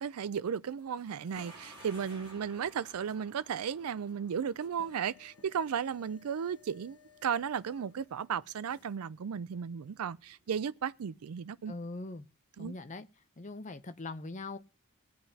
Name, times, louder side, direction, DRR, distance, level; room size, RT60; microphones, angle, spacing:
voice 1, 0.0-11.7 12.6-12.7, right 7 dB, 80° right, 0.4 m, -35 dB
sound 1, 0.7-9.0, left 4 dB, 85° left, 1.1 m, -61 dB
sound 2, 1.3-12.1, right 2 dB, 25° right, 6.3 m, -59 dB
voice 2, 11.7-12.3 12.6-13.1 13.4-14.6, left 2 dB, 35° left, 0.6 m, -41 dB
21.5 x 7.8 x 2.8 m
head